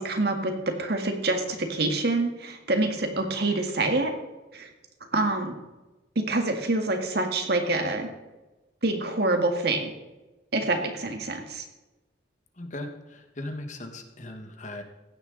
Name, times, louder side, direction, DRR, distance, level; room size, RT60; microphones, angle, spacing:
voice 1, 0.0-4.1 4.5-4.7 5.1-5.6 6.2-8.1 8.8-9.9 10.5-11.6, right 2 dB, 60° right, 4 dB, 1.9 m, -26 dB
voice 2, 12.6-14.8, left 1 dB, 40° left, 5 dB, 1.5 m, -38 dB
15.5 x 10.0 x 4.0 m, 1.1 s
head